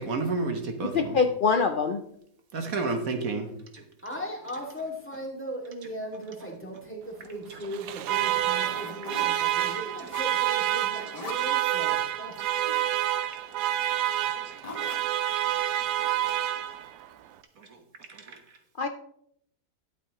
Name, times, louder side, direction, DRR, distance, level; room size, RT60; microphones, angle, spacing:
voice 1, 0.0-1.2 2.5-3.5 3.7-3.8 7.5-7.6 9.3-9.7 14.2-14.5 15.4-15.9 16.7-16.8 17.6-17.8 18.1-18.4, right 3 dB, 60° right, 5 dB, 1.5 m, -32 dB
voice 2, 0.9-2.0 18.8-18.9, left 5 dB, 75° left, 6 dB, 0.4 m, -24 dB
voice 3, 4.0-12.4, equal, 5° left, -1 dB, 2.2 m, -38 dB
Alarm, 7.6-17.1, right 13 dB, 80° right, 1.2 m, -28 dB
sound 1, 8.6-9.5 9.8-10.5 10.9-11.5 12.3-12.9 13.8-13.9 14.2-14.3 14.6-15.1 15.9-16.6, left 3 dB, 25° left, 1.7 m, -43 dB
12.0 x 8.4 x 3.0 m, 0.69 s
omnidirectional pair, 1.7 m